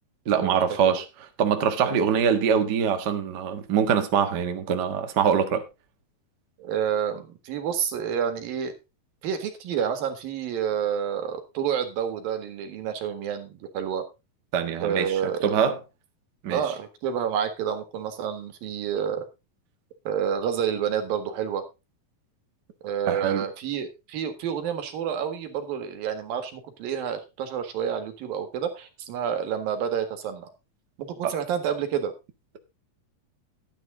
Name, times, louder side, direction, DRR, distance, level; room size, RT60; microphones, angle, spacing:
voice 1, 0.2-1.0 1.4-5.6 14.5-15.1 15.4-15.8 16.4-16.6 23.1-23.4 31.2-31.3, right 7 dB, 45° right, 1.4 m, -23 dB
voice 2, 6.6-8.7 9.2-14.0 14.8-15.6 16.5-19.2 20.1-21.6 22.8-30.5 31.0-32.1, right 8 dB, 80° right, 3.5 m, -29 dB
12.5 x 9.8 x 3.8 m
omnidirectional pair, 4.0 m